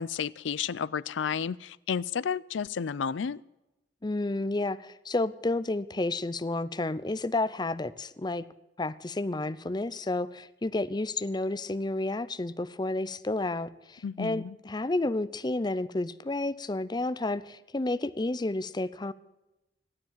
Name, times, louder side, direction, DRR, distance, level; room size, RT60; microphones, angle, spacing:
voice 1, 0.0-3.4 14.0-14.6, left 6 dB, 90° left, 21 dB, 0.4 m, -32 dB
voice 2, 4.0-8.4 8.8-19.1, left 2 dB, 25° left, 13 dB, 0.5 m, -31 dB
15.0 x 9.8 x 7.4 m, 0.98 s
head